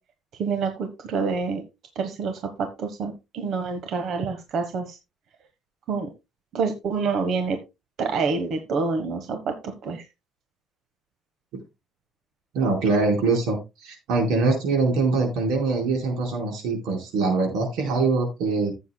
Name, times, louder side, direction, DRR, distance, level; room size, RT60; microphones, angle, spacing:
voice 1, 0.3-1.6 1.9-5.0 5.9-6.1 6.5-7.6 8.0-10.0, right 4 dB, 50° right, 6 dB, 1.2 m, -27 dB
voice 2, 12.5-18.7, right 3 dB, 85° right, 2 dB, 4.5 m, -23 dB
15.0 x 7.9 x 2.2 m, 0.24 s
cardioid pair, 165°, 0 cm